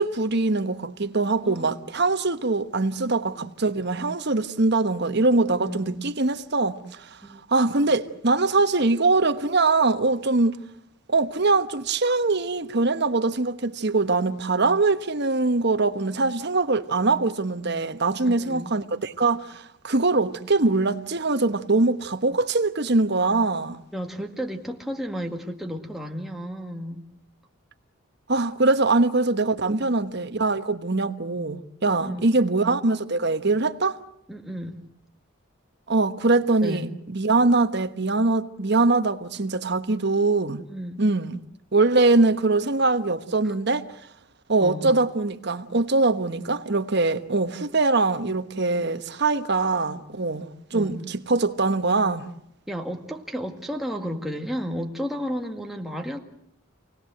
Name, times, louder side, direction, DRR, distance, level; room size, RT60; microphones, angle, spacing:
voice 1, 0.0-7.2 7.5-10.6 11.1-23.8 28.3-34.0 35.9-40.6 41.0-41.4 41.7-43.9 44.5-52.3, right 3 dB, 50° right, 1.2 m, -23 dB
voice 2, 1.4-1.8 3.3-3.5 5.5-6.0 7.2-7.4 18.2-18.7 23.9-27.1 29.7-29.9 31.8-32.3 34.3-34.8 36.6-36.9 40.6-41.0 43.4-43.5 44.6-45.0 50.7-51.0 52.7-56.2, equal, ahead, 2.1 m, -33 dB
28.0 x 19.0 x 7.8 m
head